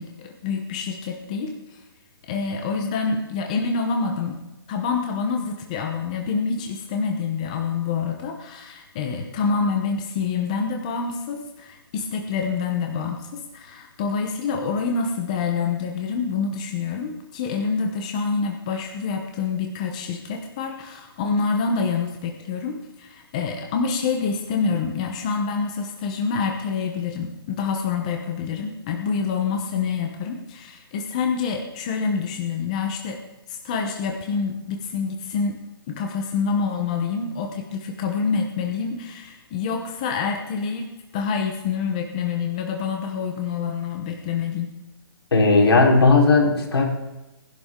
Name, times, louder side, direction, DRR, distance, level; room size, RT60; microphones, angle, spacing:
voice 1, 0.0-1.8 2.3-4.4 4.7-33.2 33.5-35.6 35.9-40.9 41.1-44.7, left 5 dB, 15° left, 2 dB, 0.8 m, -27 dB
voice 2, 45.3-46.8, left 3 dB, 80° left, 0 dB, 4.2 m, -16 dB
19.5 x 11.0 x 3.7 m, 1.0 s
hypercardioid pair, 175°, 13 cm